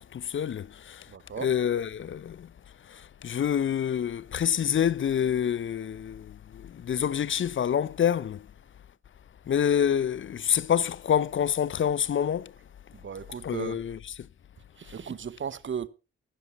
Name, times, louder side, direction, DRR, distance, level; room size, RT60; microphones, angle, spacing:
voice 1, 0.0-1.0 1.4-2.5 3.2-6.3 6.7-8.4 9.5-12.5 13.4-14.0, left 9 dB, 40° left, 0.6 m, -27 dB
voice 2, 1.1-1.5 12.9-13.9 14.8-15.9, right 7 dB, 40° right, 0.9 m, -36 dB
16.0 x 11.0 x 3.0 m
hypercardioid pair, 40°, 31 cm